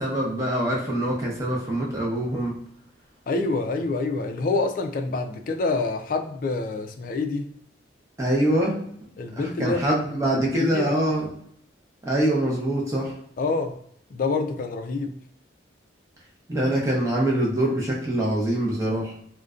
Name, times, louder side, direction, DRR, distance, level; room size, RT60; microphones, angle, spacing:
voice 1, 0.0-2.6 8.2-8.8 9.4-11.3 12.0-13.1 16.5-19.1, right 1 dB, 15° right, -3 dB, 0.6 m, -24 dB
voice 2, 3.3-7.5 9.2-9.8 10.6-11.0 13.4-13.8 14.1-15.1, left 3 dB, 45° left, 5 dB, 0.3 m, -26 dB
2.4 x 2.1 x 2.3 m, 0.68 s
head